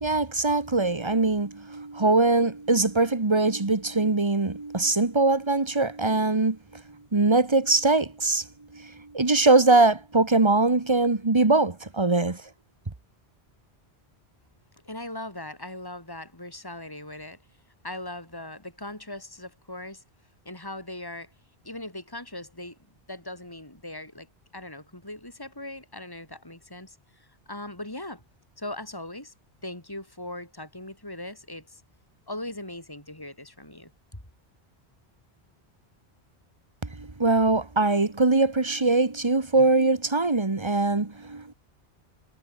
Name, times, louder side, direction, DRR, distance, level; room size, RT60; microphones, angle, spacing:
voice 1, 0.0-6.6 7.1-8.5 8.7-12.4 37.0-41.5, right 3 dB, 25° right, 1.5 m, -22 dB
voice 2, 14.8-17.4 17.8-20.0 20.4-21.3 21.6-22.8 23.1-24.3 24.5-28.2 28.6-29.3 29.6-31.8 32.3-34.2, left 1 dB, 20° left, 4.3 m, -39 dB
omnidirectional pair, 1.1 m